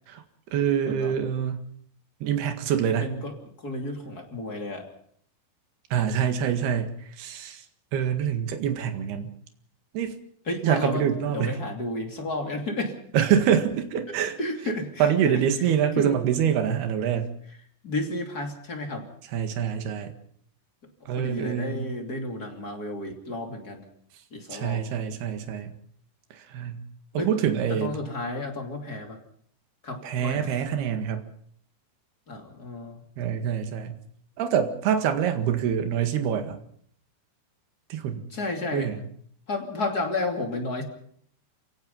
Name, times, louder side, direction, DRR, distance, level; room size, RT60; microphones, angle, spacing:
voice 1, 0.5-1.6 2.2-3.1 5.9-6.9 7.2-7.6 7.9-9.3 9.9-10.2 10.6-11.6 13.1-14.4 15.0-17.3 19.3-20.1 21.1-21.9 24.5-25.8 26.3-26.8 27.1-27.9 30.0-31.2 33.2-34.0 34.4-36.6 37.9-38.3 38.7-39.1, right 8 dB, 75° right, 6 dB, 3.8 m, -25 dB
voice 2, 3.0-3.3 3.6-4.9 10.5-11.0 11.3-12.9 14.1-15.4 16.0-16.2 17.8-19.1 21.0-23.8 24.3-24.8 27.1-27.3 27.7-29.2 29.8-30.5 32.3-33.0 38.3-38.9 39.5-40.8, left 2 dB, 25° left, 3 dB, 2.7 m, -32 dB
28.5 x 17.5 x 5.5 m, 0.63 s
omnidirectional pair, 4.7 m